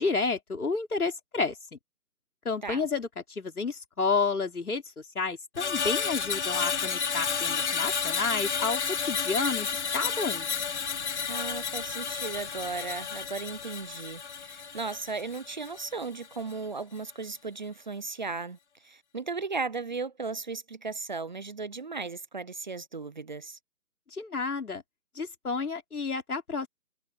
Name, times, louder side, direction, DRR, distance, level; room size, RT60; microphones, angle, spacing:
voice 1, 0.0-1.6 2.4-10.5 24.1-24.8 25.1-26.7, left 4 dB, 80° left, 4.3 m, -30 dB
Screech, 5.5-15.9 16.2-16.5, left 6 dB, 50° left, 3.4 m, -31 dB
voice 2, 11.3-23.6, right 4 dB, 30° right, 0.8 m, -36 dB
figure-of-eight pair, 160°, 44 cm